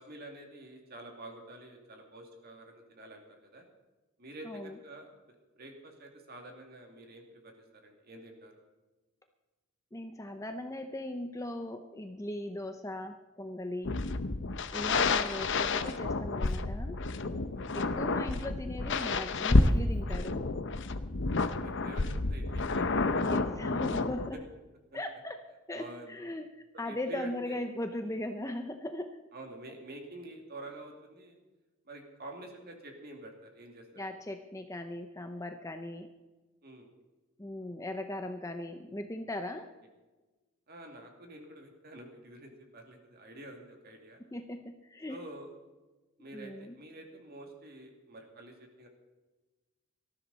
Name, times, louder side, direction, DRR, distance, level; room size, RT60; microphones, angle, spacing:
voice 1, 0.0-3.6 4.2-8.5 13.9-14.1 17.5-18.0 21.3-22.8 24.9-25.0 25.7-26.2 26.7-27.6 28.0-28.2 29.3-31.4 31.8-33.8 36.6-36.9 40.7-44.2 45.1-45.5 46.2-48.9, right 1 dB, 45° right, 2 dB, 2.5 m, -48 dB
voice 2, 4.4-4.8 9.9-14.0 14.7-17.0 17.7-20.5 23.2-24.4 24.9-25.4 25.7-26.5 26.8-29.1 34.0-36.1 37.4-39.7 44.3-45.2 46.3-46.8, left 1 dB, 15° left, 6 dB, 0.6 m, -38 dB
sound 1, 13.8-24.3, left 3 dB, 55° left, 0.8 m, -30 dB
19.0 x 13.5 x 4.1 m, 1.2 s
head